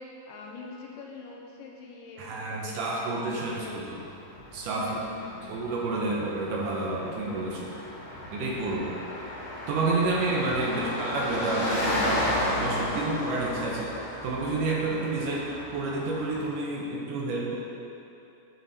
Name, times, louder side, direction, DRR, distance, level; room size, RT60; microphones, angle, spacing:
voice 1, 0.0-3.8 4.8-5.7 10.6-10.9, left 3 dB, 80° left, -1 dB, 2.3 m, -44 dB
voice 2, 2.2-4.0 4.5-5.0 5.5-7.8 8.3-9.0 9.7-13.9 14.2-17.6, right 3 dB, 75° right, -3 dB, 2.2 m, -29 dB
Car passing by, 3.3-16.6, left 1 dB, 40° left, 1.9 m, -34 dB
9.2 x 5.1 x 4.0 m, 2.8 s
omnidirectional pair, 4.1 m